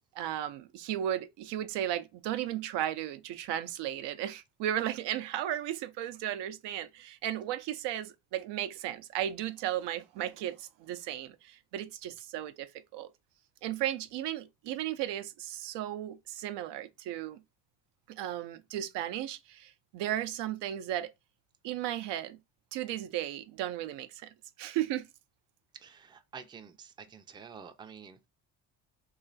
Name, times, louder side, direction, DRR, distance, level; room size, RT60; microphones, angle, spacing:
voice 1, 0.2-13.1 13.6-17.4 18.1-21.1 21.6-22.4 22.7-24.3 24.6-25.0, right 12 dB, 85° right, 0.6 m, -35 dB
voice 2, 25.8-28.3, right 6 dB, 10° right, 0.3 m, -49 dB
3.1 x 2.4 x 3.8 m
cardioid pair, 95°, 41 cm